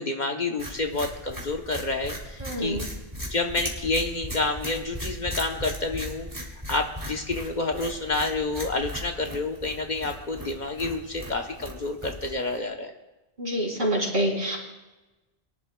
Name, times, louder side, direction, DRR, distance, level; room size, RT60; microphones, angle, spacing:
voice 1, 0.0-2.8 3.3-12.9, left 2 dB, 50° left, 3 dB, 1.0 m, -29 dB
sound 1, 0.6-12.6, equal, 20° right, 2.5 m, -38 dB
voice 2, 2.4-2.8 13.4-14.6, equal, 55° right, -3 dB, 3.6 m, -26 dB
23.0 x 11.0 x 2.3 m, 1.1 s
omnidirectional pair, 1.0 m